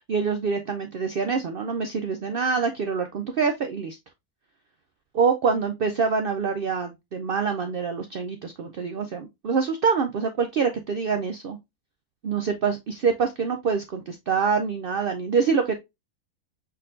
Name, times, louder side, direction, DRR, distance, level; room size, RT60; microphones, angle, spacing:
voice 1, 0.1-4.0 5.1-11.6 12.2-15.8, right 5 dB, 70° right, 6 dB, 0.5 m, -25 dB
4.4 x 3.9 x 2.4 m, 0.20 s
omnidirectional pair, 1.5 m